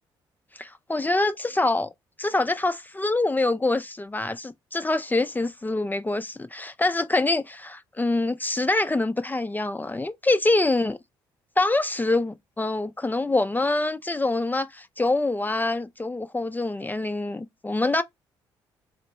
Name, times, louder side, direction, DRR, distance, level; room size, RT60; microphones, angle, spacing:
voice 1, 0.6-1.9 2.2-11.0 11.6-18.0, left 2 dB, 15° left, 0.4 m, -25 dB
4.1 x 2.1 x 2.9 m
hypercardioid pair, 50°, 11 cm